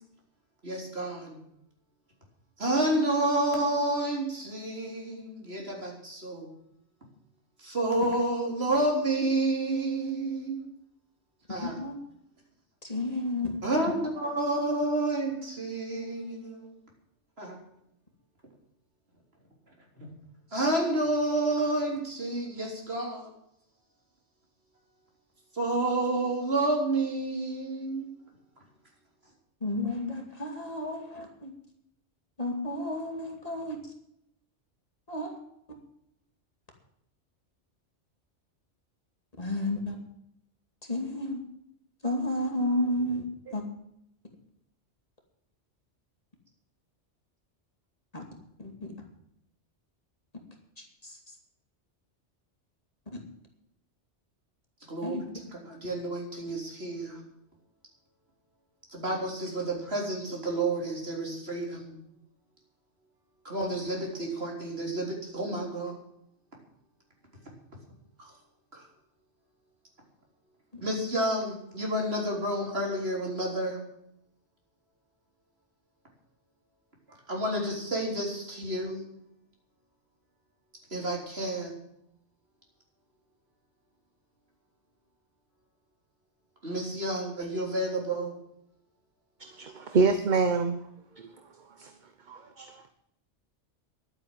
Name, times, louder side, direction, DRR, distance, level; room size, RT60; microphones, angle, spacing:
voice 1, 0.6-1.4 2.6-6.5 7.6-10.6 11.5-11.8 13.6-16.7 17.4-17.6 20.0-20.1 20.5-23.3 25.5-28.1 54.9-57.2 58.9-62.0 63.4-65.9 68.2-68.3 68.7-68.9 70.8-73.8 77.1-79.1 80.9-81.7 86.6-88.4, right 1 dB, 60° right, 0 dB, 4.1 m, -30 dB
voice 2, 11.6-11.9 12.8-13.6 29.6-31.5 32.4-33.8 35.1-35.4 39.4-40.0 40.9-41.4 42.0-43.3 43.5-43.6 48.1-48.2 48.6-48.9 50.8-51.2 55.0-55.2 70.7-70.8, left 1 dB, 35° left, 2 dB, 2.5 m, -32 dB
voice 3, 89.4-90.8 91.2-91.3 91.7-92.0 92.3-92.9, right 4 dB, 45° right, 8 dB, 1.0 m, -27 dB
11.5 x 9.0 x 9.1 m, 0.76 s
omnidirectional pair, 1.2 m